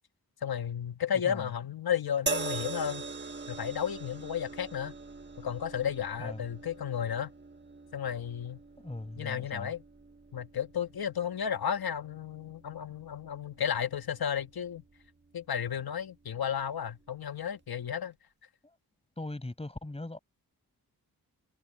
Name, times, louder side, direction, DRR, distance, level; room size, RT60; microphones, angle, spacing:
voice 1, 0.4-3.0 3.5-4.9 5.4-7.3 7.9-8.6 9.2-9.8 10.3-14.8 15.3-18.1, left 8 dB, 70° left, 1.4 m, -33 dB
sound 1, 2.3-15.6 16.5-16.7, right 3 dB, 30° right, 1.5 m, -42 dB
voice 2, 8.8-9.7 19.2-20.2, left 2 dB, 15° left, 7.7 m, -39 dB
wide cardioid pair, 155°, 38 cm